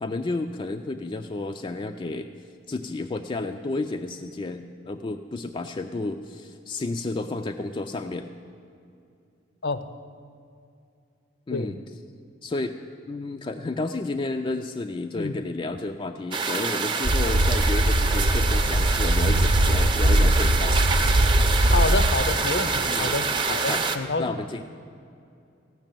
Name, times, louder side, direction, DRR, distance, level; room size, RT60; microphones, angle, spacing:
voice 1, 0.0-2.3 2.7-8.3 11.5-11.8 12.4-12.8 13.1-20.7 22.9-23.1 23.5-23.8 24.2-24.6, left 2 dB, 25° left, 6 dB, 0.3 m, -31 dB
sound 1, 16.3-24.0, right 4 dB, 25° right, 0.6 m, -26 dB
sound 2, 17.0-22.1, right 1 dB, 70° right, 0.8 m, -21 dB
voice 2, 21.7-24.4, left 3 dB, 60° left, 11 dB, 0.6 m, -28 dB
15.5 x 6.0 x 9.0 m, 2.5 s
head